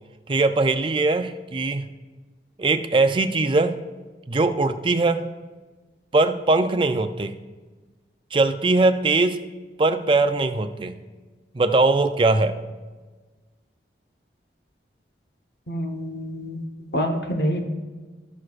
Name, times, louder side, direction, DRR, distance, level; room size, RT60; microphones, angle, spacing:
voice 1, 0.3-1.9 2.6-3.8 4.3-5.2 6.1-7.4 8.3-9.4 9.8-11.0 11.5-12.5, right 3 dB, 30° right, 9 dB, 0.4 m, -21 dB
voice 2, 15.7-16.7 16.9-17.6, equal, 70° left, 4 dB, 1.1 m, -26 dB
18.0 x 6.3 x 2.5 m, 1.3 s
head